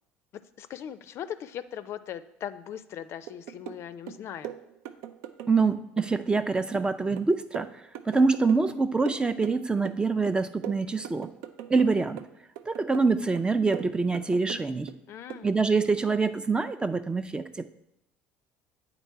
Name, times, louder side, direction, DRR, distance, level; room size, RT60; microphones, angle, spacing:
voice 1, 0.6-4.5 15.1-15.5, left 9 dB, 55° left, 12 dB, 0.4 m, -39 dB
sound 1, 3.3-3.8 4.1-5.7 6.0-8.8 9.1-10.0 10.3-11.9 12.2-13.1 13.4-15.0 15.3-15.5, right 11 dB, 75° right, 0.4 m, -40 dB
voice 2, 5.5-11.3 11.7-12.2 12.7-14.9 15.4-17.7, right 4 dB, 15° right, 11 dB, 0.4 m, -25 dB
8.3 x 4.0 x 4.5 m, 0.81 s
supercardioid pair, 80°, 5 cm